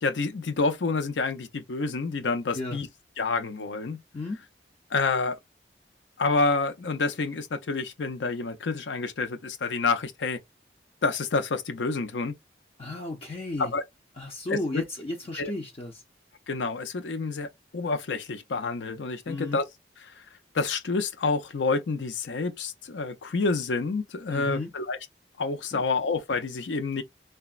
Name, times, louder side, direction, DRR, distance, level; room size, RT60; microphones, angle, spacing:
voice 1, 0.0-2.9 3.2-4.0 4.9-5.4 6.2-10.4 11.0-12.3 13.6-13.8 14.5-14.8 15.4-15.5 16.5-17.5 17.7-19.6 20.0-20.2 20.5-25.0 25.4-27.0, left 4 dB, 85° left, 0.6 m, -28 dB
voice 2, 12.8-13.7 14.2-16.0 19.3-19.6 24.3-24.7 25.7-25.8, left 2 dB, 30° left, 0.4 m, -34 dB
3.4 x 2.0 x 2.4 m
head